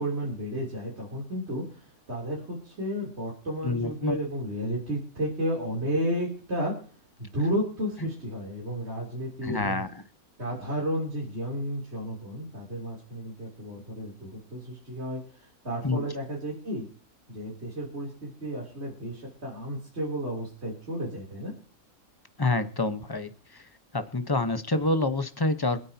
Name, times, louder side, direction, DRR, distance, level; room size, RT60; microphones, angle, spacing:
voice 1, 0.0-6.7 7.2-9.8 10.4-16.9 17.3-21.5, equal, 50° right, -4 dB, 3.8 m, -32 dB
voice 2, 3.6-4.2 9.4-9.9 15.8-16.0 22.4-23.6 23.9-25.8, left 2 dB, 20° left, 9 dB, 1.0 m, -27 dB
26.5 x 9.2 x 2.9 m, 0.41 s
omnidirectional pair, 1.5 m